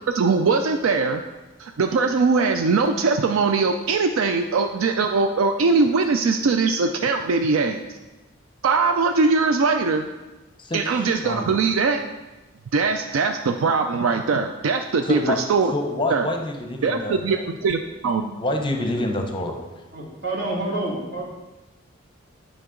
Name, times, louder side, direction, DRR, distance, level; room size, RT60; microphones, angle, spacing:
voice 1, 0.1-1.2 1.6-7.8 8.6-10.1 10.7-12.0 12.7-15.7 16.1-16.3 16.8-17.4 17.6-18.4, right 4 dB, 75° right, 6 dB, 0.4 m, -21 dB
voice 2, 10.6-11.6 15.0-15.4 15.7-17.4 18.4-19.6, left 1 dB, 25° left, 4 dB, 0.7 m, -27 dB
voice 3, 19.9-21.2, right 2 dB, 55° right, -4 dB, 2.1 m, -28 dB
9.5 x 5.3 x 3.8 m, 1.1 s
head